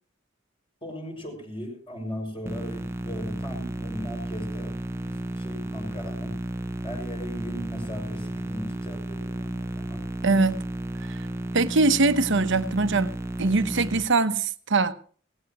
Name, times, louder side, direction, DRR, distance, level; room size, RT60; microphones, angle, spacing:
voice 1, 0.8-4.7 5.0-6.4 6.8-10.0, equal, 25° left, 6.5 m, -38 dB
sound 1, 2.5-14.0, right 1 dB, 15° right, 0.8 m, -33 dB
voice 2, 10.2-10.6 11.1-11.2 11.5-13.1 13.4-14.9, right 3 dB, 65° right, 1.0 m, -22 dB
19.0 x 17.5 x 3.1 m
head